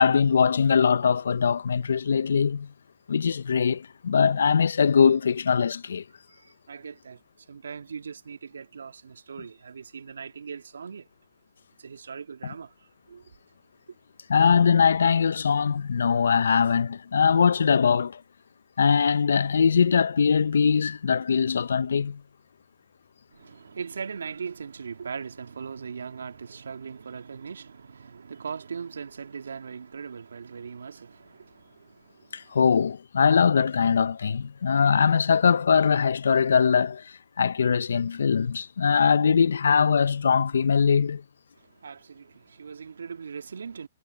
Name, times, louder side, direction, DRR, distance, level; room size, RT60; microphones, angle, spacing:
voice 1, 0.0-2.7 3.1-6.0 14.3-18.2 18.8-22.2 32.3-41.2, left 6 dB, 75° left, 0.9 m, -22 dB
voice 2, 6.3-11.1 11.8-13.3 13.9-14.0 14.4-14.5 23.3-32.6 41.6-43.9, right 6 dB, 80° right, 2.2 m, -40 dB
hypercardioid pair, 125°, 0 cm